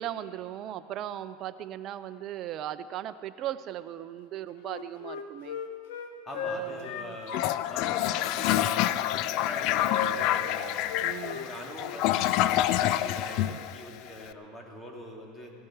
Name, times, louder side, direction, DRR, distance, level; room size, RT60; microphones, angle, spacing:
voice 1, 0.0-5.6 6.4-7.2 8.3-8.5 11.0-11.5 13.4-13.6, right 11 dB, 45° right, 12 dB, 0.6 m, -38 dB
Wind instrument woodwind instrument, 4.6-8.1 8.4-11.5 11.8-12.0, left 6 dB, 75° left, 1.2 m, -37 dB
voice 2, 6.2-7.4 7.7-8.9 9.3-10.9 11.3-15.5, left 1 dB, 20° left, 0 dB, 2.8 m, -43 dB
Toilet flush, 7.3-14.2, left 13 dB, 55° left, 0.4 m, -27 dB
17.0 x 12.0 x 4.7 m, 2.2 s
hypercardioid pair, 95°, 0 cm